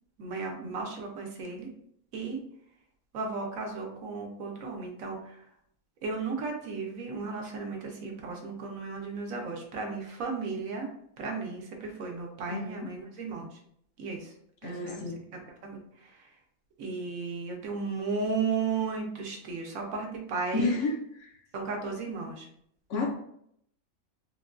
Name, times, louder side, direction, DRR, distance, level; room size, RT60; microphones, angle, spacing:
voice 1, 0.2-1.7 2.1-2.4 3.1-5.4 6.0-10.9 11.2-13.6 14.0-14.3 14.6-15.0 15.3-16.3 16.8-20.8 21.5-22.5, right 4 dB, 75° right, 1 dB, 1.1 m, -35 dB
voice 2, 12.5-12.9 14.6-15.2 20.5-21.3 22.9-23.1, left 3 dB, 65° left, 0 dB, 0.9 m, -31 dB
3.7 x 2.2 x 2.4 m, 0.70 s
omnidirectional pair, 1.5 m